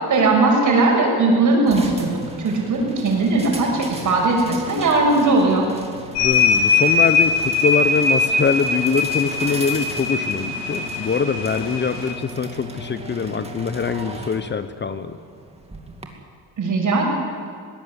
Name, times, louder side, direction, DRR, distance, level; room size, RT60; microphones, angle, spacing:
voice 1, 0.0-5.6 16.6-17.0, right 3 dB, 50° right, 1 dB, 6.4 m, -18 dB
sound 1, 1.7-16.1, right 1 dB, 15° right, 2.6 m, -37 dB
sound 2, 6.1-12.1, left 4 dB, 85° left, 3.0 m, -21 dB
voice 2, 6.1-15.2, left 5 dB, 25° left, 11 dB, 0.8 m, -23 dB
21.5 x 17.5 x 8.3 m, 2.2 s
cardioid pair, 115°, 40 cm